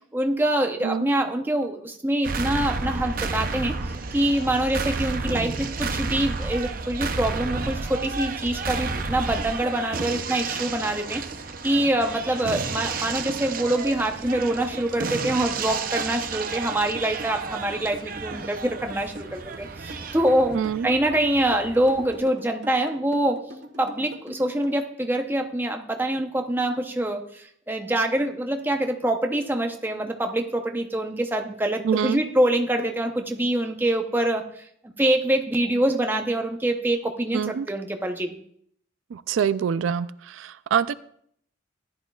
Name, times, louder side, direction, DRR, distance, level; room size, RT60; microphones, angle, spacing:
voice 1, 0.1-11.2 11.6-23.5 23.8-34.7 35.0-38.3, right 1 dB, 10° right, 4 dB, 0.7 m, -25 dB
sound 1, 2.2-22.2, right 4 dB, 45° right, 0.6 m, -31 dB
sound 2, 9.4-24.8, right 1 dB, 65° right, 1.6 m, -42 dB
voice 2, 20.5-20.9 31.9-32.2 37.3-37.6 39.1-40.1 40.4-40.9, right 7 dB, 85° right, 15 dB, 0.3 m, -25 dB
15.0 x 10.5 x 2.4 m, 0.67 s
head